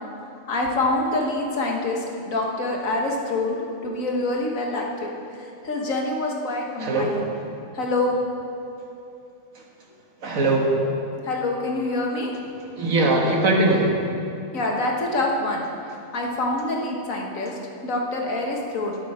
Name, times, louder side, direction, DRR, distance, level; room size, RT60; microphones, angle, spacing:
voice 1, 0.5-7.3 7.7-8.2 11.2-12.3 14.5-15.6 16.1-17.5 17.8-19.0, left 2 dB, 75° left, 0 dB, 1.8 m, -26 dB
voice 2, 6.8-7.3 10.2-10.8 12.8-14.0, right 2 dB, 75° right, 0 dB, 1.9 m, -20 dB
12.0 x 12.0 x 4.3 m, 2.7 s
omnidirectional pair, 1.4 m